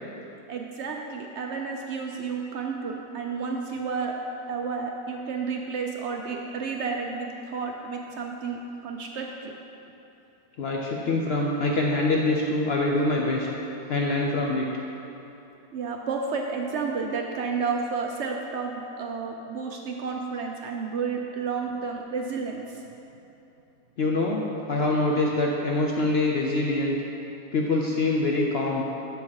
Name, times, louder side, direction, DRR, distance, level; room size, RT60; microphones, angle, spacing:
voice 1, 0.5-4.2 4.5-9.5 15.7-22.8, right 5 dB, 70° right, 1 dB, 0.6 m, -31 dB
voice 2, 10.6-13.5 13.9-14.7 24.0-24.4 24.7-26.9 27.5-28.8, left 2 dB, 65° left, -1 dB, 0.6 m, -24 dB
7.1 x 6.6 x 4.7 m, 2.9 s
omnidirectional pair, 1.7 m